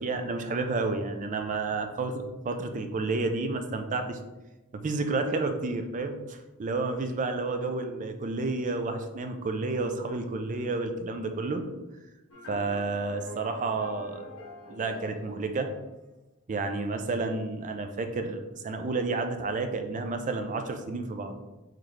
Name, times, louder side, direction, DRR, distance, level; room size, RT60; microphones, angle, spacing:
voice 1, 0.0-4.2 4.7-11.6 12.5-15.7 16.5-21.4, right 3 dB, 35° right, 7 dB, 0.4 m, -31 dB
sound 1, 12.3-16.0, left 3 dB, 70° left, 0.7 m, -45 dB
3.9 x 3.0 x 3.2 m, 1.1 s
head